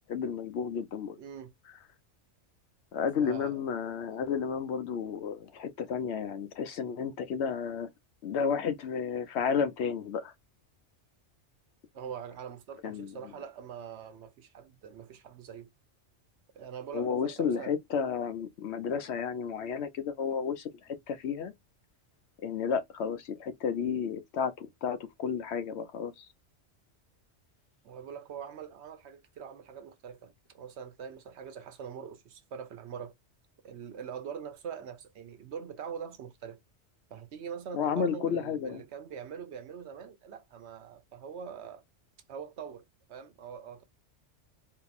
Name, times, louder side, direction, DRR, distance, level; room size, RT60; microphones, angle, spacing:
voice 1, 0.1-1.2 2.9-7.9 8.2-10.3 12.8-13.1 16.9-21.5 22.4-26.3 37.7-38.8, left 6 dB, 70° left, 0.9 m, -32 dB
voice 2, 1.2-1.5 3.2-3.6 11.9-15.7 16.5-17.7 27.8-33.1 33.6-36.6 37.1-41.8 42.3-42.8 43.1-43.8, right 7 dB, 70° right, 1.0 m, -43 dB
3.9 x 2.7 x 2.4 m
omnidirectional pair, 1.2 m